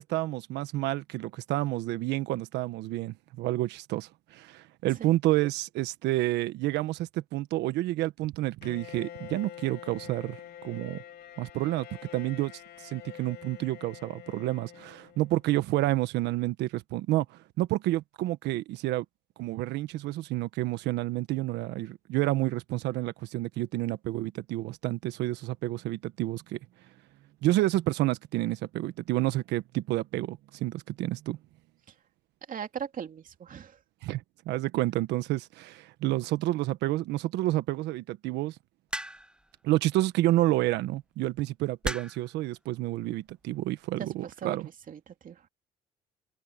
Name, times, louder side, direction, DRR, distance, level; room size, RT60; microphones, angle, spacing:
voice 1, 0.0-10.4 10.6-11.0 11.4-11.9 12.1-12.5 12.8-19.0 19.4-26.6 27.4-31.4 34.0-38.5 39.6-44.7, right 16 dB, 80° right, 1.3 m, -29 dB
Bowed string instrument, 8.6-15.5, left 10 dB, 65° left, 3.7 m, -46 dB
voice 2, 32.5-33.8 44.0-45.5, right 8 dB, 50° right, 2.7 m, -39 dB
sound 1, 38.9-39.4 40.7-40.9 41.8-42.3 43.3-43.6, right 1 dB, 5° right, 1.2 m, -35 dB
open air
supercardioid pair, 75°, 17 cm